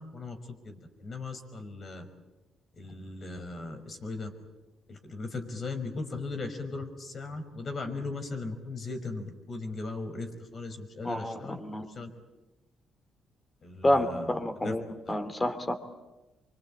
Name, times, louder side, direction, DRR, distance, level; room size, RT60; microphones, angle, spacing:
voice 1, 0.0-2.1 2.7-4.3 4.9-12.1 13.6-14.8 15.1-15.2, left 3 dB, 45° left, 7 dB, 5.5 m, -38 dB
voice 2, 11.0-11.9 13.8-15.8, left 1 dB, 15° left, 10 dB, 3.3 m, -29 dB
26.0 x 24.5 x 8.9 m, 1.1 s
cardioid pair, 90°, 0 cm